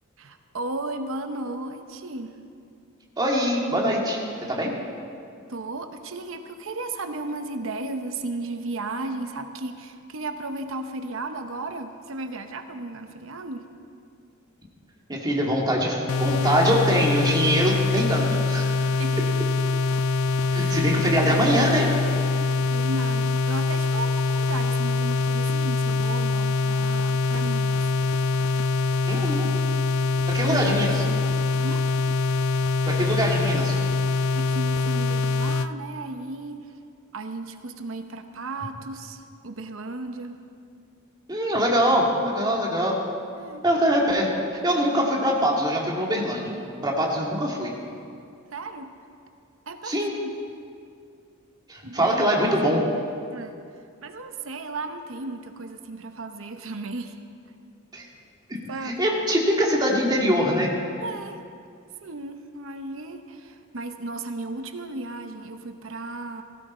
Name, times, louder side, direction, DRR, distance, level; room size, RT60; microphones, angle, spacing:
voice 1, 0.2-2.4 4.4-4.5 5.5-13.6 19.0-19.4 20.5-21.9 22.3-27.8 30.4-31.3 31.6-31.8 34.3-36.6 37.1-40.4 43.4-43.6 48.5-48.9 49.7-50.4 51.8-52.8 53.3-53.6 54.0-57.2 58.7-59.1 61.0-61.4 62.0-66.4, right 2 dB, 65° right, 7 dB, 0.9 m, -35 dB
voice 2, 3.2-4.2 4.5-4.7 15.1-18.6 20.5-21.9 29.1-29.5 30.3-30.9 32.8-33.8 41.3-43.0 43.6-44.3 44.6-47.7 49.8-50.1 51.7-52.8 57.9-58.1 58.8-60.7, equal, 20° right, -2 dB, 2.1 m, -23 dB
sound 1, 16.1-35.7, left 3 dB, 70° left, 0.4 m, -24 dB
16.5 x 15.0 x 4.3 m, 2.4 s
head